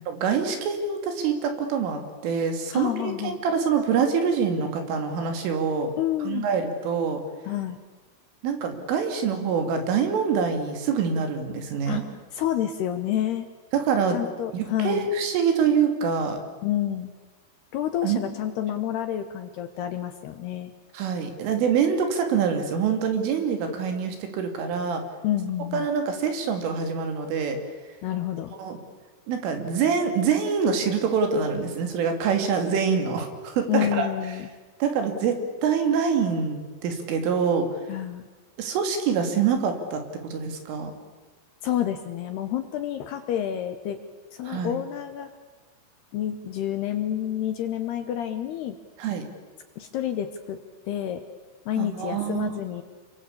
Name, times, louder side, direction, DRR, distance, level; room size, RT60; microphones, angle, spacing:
voice 1, 0.1-5.9 6.3-7.2 8.4-12.0 13.7-14.2 14.5-16.4 18.0-18.2 20.9-25.0 25.7-27.6 28.6-28.8 29.3-34.1 34.8-37.7 38.6-40.9 44.5-44.8 49.0-49.2 51.8-52.5, right 6 dB, 75° right, 5 dB, 5.3 m, -25 dB
voice 2, 2.7-3.4 6.0-6.5 7.5-7.8 11.9-12.0 12.3-13.5 14.1-15.1 16.6-17.1 17.7-20.7 25.2-25.9 28.0-28.6 33.7-34.5 37.9-38.3 41.6-44.0 44.3-45.3 46.1-48.8 49.8-50.6 50.9-51.2 51.7-52.8, left 11 dB, 70° left, 8 dB, 2.7 m, -29 dB
29.0 x 23.5 x 8.6 m, 1.3 s
omnidirectional pair, 5.8 m